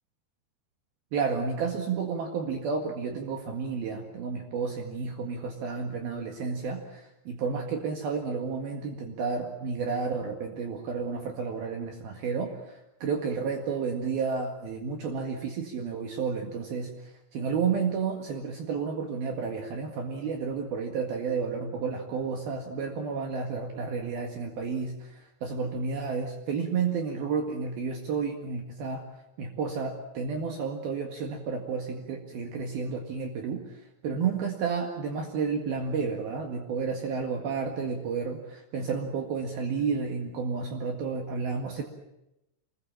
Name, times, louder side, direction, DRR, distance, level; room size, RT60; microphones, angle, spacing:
voice 1, 1.1-29.0 29.4-33.7 34.0-41.8, right 5 dB, 65° right, 3 dB, 3.6 m, -31 dB
25.5 x 22.0 x 7.4 m, 0.89 s
omnidirectional pair, 5.0 m